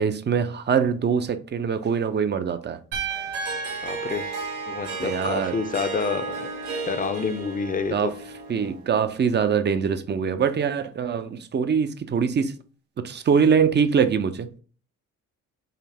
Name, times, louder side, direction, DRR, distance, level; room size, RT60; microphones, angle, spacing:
voice 1, 0.0-2.8 5.0-5.5 7.9-8.1 8.5-12.5 13.0-14.6, right 6 dB, 35° right, 0.6 m, -23 dB
sound 1, 2.9-5.2, right 8 dB, 90° right, 1.1 m, -35 dB
Harp, 3.1-8.9, right 4 dB, 70° right, 1.9 m, -33 dB
voice 2, 3.8-4.4 4.7-6.5 6.9-8.1, left 5 dB, 30° left, 0.6 m, -28 dB
5.7 x 2.0 x 3.4 m
cardioid pair, 90°, 30 cm